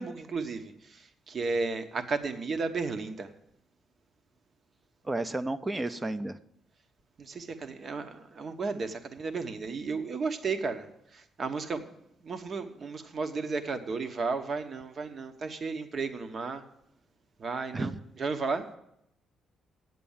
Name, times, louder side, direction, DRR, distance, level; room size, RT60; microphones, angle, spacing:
voice 1, 0.0-3.3 7.2-10.9 11.1-11.8 12.2-16.6 17.4-17.9 18.2-18.8, right 4 dB, 45° right, 8 dB, 1.0 m, -33 dB
voice 2, 5.0-6.4 17.7-18.0, right 2 dB, 20° right, 12 dB, 0.5 m, -32 dB
8.3 x 7.7 x 7.1 m, 0.78 s
cardioid pair, 90°, 0 cm